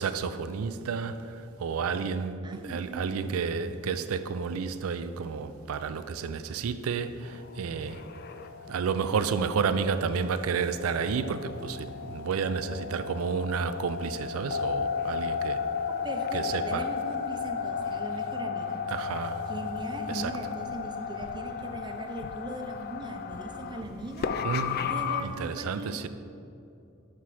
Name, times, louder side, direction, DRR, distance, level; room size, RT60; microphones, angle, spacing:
voice 1, 0.0-8.0 8.7-15.6 16.3-16.8 18.9-19.4 20.1-20.3 24.4-24.9 25.2-26.1, right 5 dB, 80° right, 12 dB, 0.4 m, -31 dB
voice 2, 2.4-3.2 16.0-18.8 19.5-24.3 24.9-26.1, right 1 dB, 20° right, 5 dB, 0.5 m, -39 dB
sound 1, 7.2-25.2, left 6 dB, 50° left, 0.3 m, -34 dB
5.9 x 5.8 x 4.8 m, 2.6 s
head